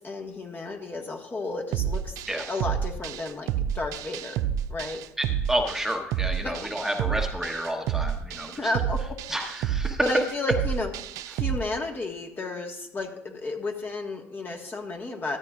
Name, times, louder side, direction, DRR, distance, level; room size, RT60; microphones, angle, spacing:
voice 1, 0.0-2.1 2.5-4.4 4.7-5.0 6.4-6.5 8.6-9.2 10.0-10.9 11.3-15.4, left 2 dB, 30° left, 2 dB, 1.7 m, -32 dB
sound 1, 1.7-11.6, right 9 dB, 70° right, 0.4 m, -30 dB
voice 2, 5.2-8.7 9.3-10.0, right 1 dB, 5° right, 2 dB, 1.2 m, -30 dB
13.5 x 9.0 x 2.5 m, 0.86 s
hypercardioid pair, 65°, 6 cm